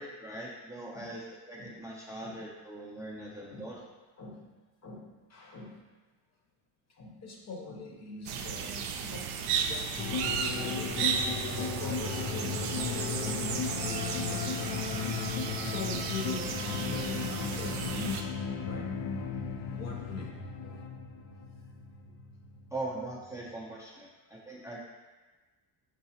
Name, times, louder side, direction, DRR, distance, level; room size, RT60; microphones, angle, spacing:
voice 1, 0.0-3.8 22.7-24.8, right 2 dB, 5° right, -5 dB, 0.5 m, -41 dB
voice 2, 4.2-4.5 4.8-5.9 6.9-10.0 10.5-11.0 11.6-14.9 15.6-19.4 19.7-20.8, left 4 dB, 35° left, 0 dB, 0.9 m, -43 dB
sound 1, 8.3-18.2, right 6 dB, 65° right, 0.5 m, -34 dB
sound 2, 10.0-23.6, left 6 dB, 75° left, 0.6 m, -36 dB
4.7 x 3.9 x 2.8 m, 1.3 s
cardioid pair, 115°, 43 cm